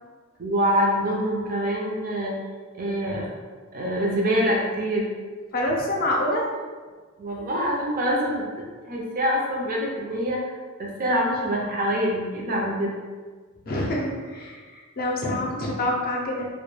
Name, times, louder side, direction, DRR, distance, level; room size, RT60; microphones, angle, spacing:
voice 1, 0.4-2.4 2.7-3.3 3.7-5.1 7.2-13.0, equal, 45° right, -2 dB, 0.5 m, -25 dB
voice 2, 5.5-6.5 13.6-16.5, left 1 dB, 45° left, -2 dB, 0.5 m, -26 dB
2.2 x 2.1 x 3.1 m, 1.5 s
head